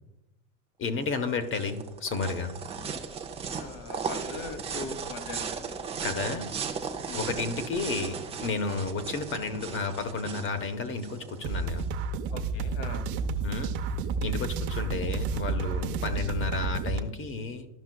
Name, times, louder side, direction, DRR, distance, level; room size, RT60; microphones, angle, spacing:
voice 1, 0.8-2.5 6.0-6.5 7.1-11.8 13.4-13.8 14.2-17.7, left 4 dB, 25° left, 9 dB, 0.8 m, -32 dB
sound 1, 1.0-11.9, right 6 dB, 15° right, 0.4 m, -36 dB
voice 2, 3.5-5.5 7.1-7.2 12.3-13.0, left 4 dB, 70° left, 8 dB, 1.3 m, -40 dB
sound 2, 11.4-17.0, right 4 dB, 50° right, 0.8 m, -31 dB
12.5 x 5.6 x 2.2 m, 0.93 s
hypercardioid pair, 110°, 48 cm